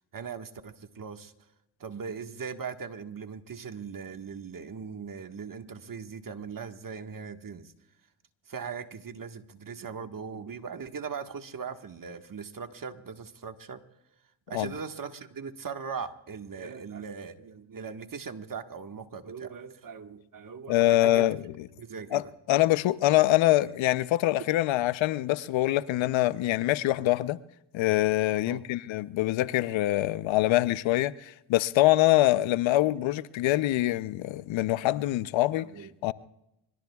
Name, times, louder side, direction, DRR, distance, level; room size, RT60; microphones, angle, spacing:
voice 1, 0.1-1.3 1.8-7.7 8.5-13.8 14.5-21.3 21.8-22.3 28.5-28.6 32.4-32.5 35.6-35.9, right 6 dB, 45° right, 1.6 m, -39 dB
voice 2, 20.7-21.7 22.1-22.2 22.5-27.4 27.7-35.7 36.0-36.1, left 16 dB, 75° left, 0.7 m, -24 dB
25.5 x 23.5 x 2.4 m
supercardioid pair, 60°, 46 cm